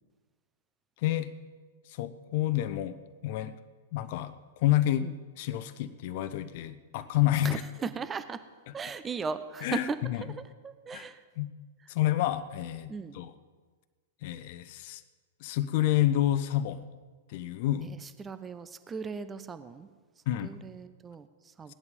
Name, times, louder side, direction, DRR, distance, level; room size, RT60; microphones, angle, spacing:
voice 1, 1.0-1.3 1.9-3.5 3.9-5.1 5.4-7.6 9.6-10.2 10.9-11.0 11.4-11.5 11.9-13.3 14.2-15.0 15.4-16.8 17.3-17.9 20.3-20.5, left 13 dB, 50° left, 11 dB, 0.8 m, -29 dB
voice 2, 7.4-8.4 8.7-11.2 12.9-13.2 17.8-19.9 20.4-21.7, right 5 dB, 20° right, 12 dB, 0.8 m, -38 dB
17.5 x 11.0 x 5.4 m, 1.4 s
figure-of-eight pair, 100°, 0 cm